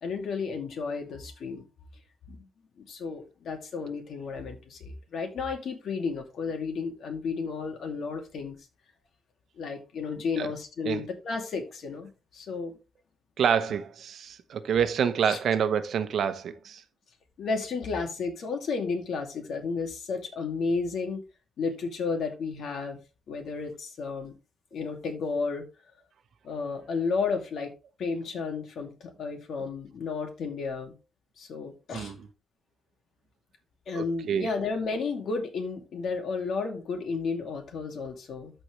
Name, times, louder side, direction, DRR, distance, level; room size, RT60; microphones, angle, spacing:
voice 1, 0.0-1.6 2.3-2.5 2.8-8.6 9.6-12.8 15.2-15.4 17.4-21.2 21.6-23.0 23.3-24.3 24.7-25.6 26.4-27.7 28.0-30.9 31.4-32.1 33.9-38.5, left 4 dB, 65° left, 2.5 m, -32 dB
voice 2, 13.4-16.8 31.9-32.3 33.9-34.5, right 7 dB, 65° right, 0.9 m, -27 dB
13.5 x 4.5 x 3.3 m
cardioid pair, 120°, 0 cm